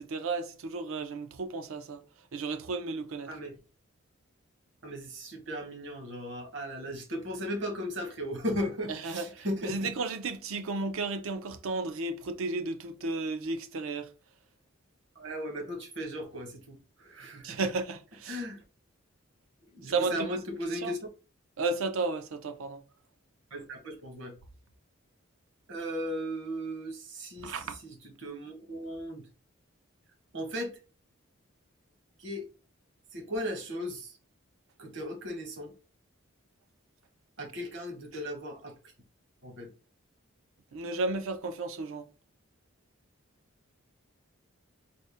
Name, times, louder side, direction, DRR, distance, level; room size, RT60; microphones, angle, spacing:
voice 1, 0.0-2.0 2.3-3.3 9.0-14.1 17.4-18.4 19.8-20.4 20.7-20.9 21.6-22.8 27.4-27.8 40.7-42.0, right 3 dB, 80° right, 0.5 m, -33 dB
voice 2, 4.8-9.9 15.2-17.6 18.3-18.6 19.7-21.0 23.5-24.3 25.7-29.2 30.3-30.7 32.2-32.4 33.1-34.1 34.8-35.7 37.4-38.7 39.4-39.7, equal, 55° right, 1.0 m, -37 dB
4.0 x 2.1 x 3.3 m
head